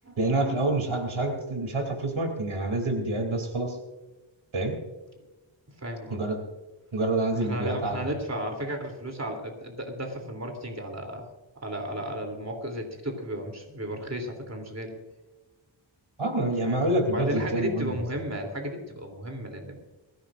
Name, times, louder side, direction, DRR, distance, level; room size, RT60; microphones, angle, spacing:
voice 1, 0.2-3.8 4.5-4.8 6.1-6.4 6.9-8.1 16.2-18.0, right 2 dB, 85° right, 4 dB, 3.1 m, -27 dB
voice 2, 5.8-6.2 7.3-11.3 11.5-14.9 16.6-16.8 17.1-19.8, equal, 35° right, 3 dB, 3.1 m, -34 dB
22.5 x 16.0 x 2.5 m, 1.2 s
wide cardioid pair, 90°, 47 cm